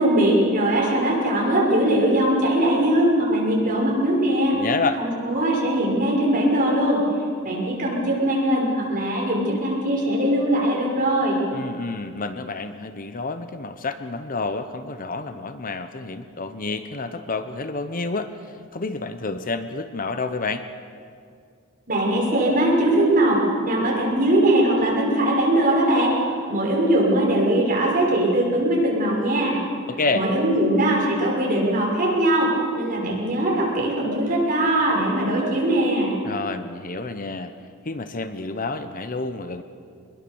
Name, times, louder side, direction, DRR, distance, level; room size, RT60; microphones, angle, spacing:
voice 1, 0.0-4.5 5.0-7.0 7.4-11.4 21.9-26.2 26.5-29.6 30.1-36.1, right 1 dB, 40° right, -3 dB, 6.4 m, -21 dB
voice 2, 4.5-5.0 11.5-18.3 18.7-20.6 29.9-30.2 36.2-37.5 37.8-39.6, left 3 dB, 40° left, 10 dB, 0.9 m, -29 dB
24.0 x 21.5 x 7.1 m, 2.3 s
head